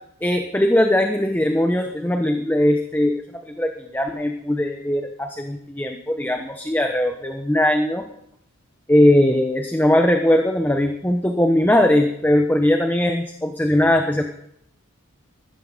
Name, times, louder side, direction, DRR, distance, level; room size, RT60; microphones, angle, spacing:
voice 1, 0.2-8.0 8.9-14.2, left 1 dB, 10° left, 5 dB, 0.9 m, -20 dB
15.5 x 13.5 x 4.0 m, 0.72 s
head